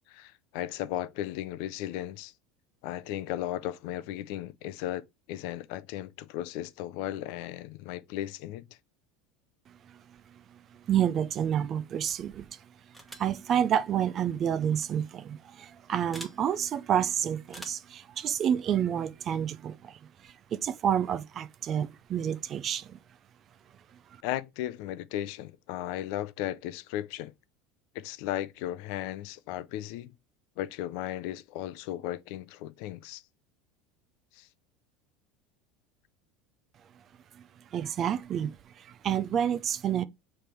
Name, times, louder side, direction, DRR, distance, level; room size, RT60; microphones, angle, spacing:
voice 1, 0.1-2.3 2.8-8.8 24.2-27.3 27.9-30.1 30.6-33.2 34.3-34.5, left 13 dB, 65° left, 0.5 m, -36 dB
voice 2, 10.9-12.6 13.2-23.0 37.7-40.0, right 9 dB, 35° right, 0.5 m, -29 dB
sound 1, 12.9-13.4 14.7-14.9 16.1-16.4 17.5-17.9, equal, ahead, 1.2 m, -45 dB
7.0 x 3.3 x 4.5 m
supercardioid pair, 145°, 0 cm